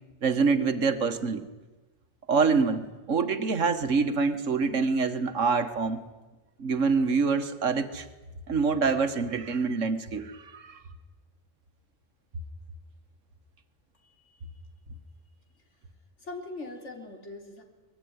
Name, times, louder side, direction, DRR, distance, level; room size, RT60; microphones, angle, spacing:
voice 1, 0.2-1.5 2.3-6.0 6.6-8.1 8.5-10.8, right 4 dB, 80° right, 9 dB, 1.9 m, -26 dB
voice 2, 14.0-14.4 16.2-17.6, left 2 dB, 65° left, 3 dB, 3.8 m, -41 dB
25.0 x 21.0 x 9.6 m, 1.2 s
omnidirectional pair, 1.3 m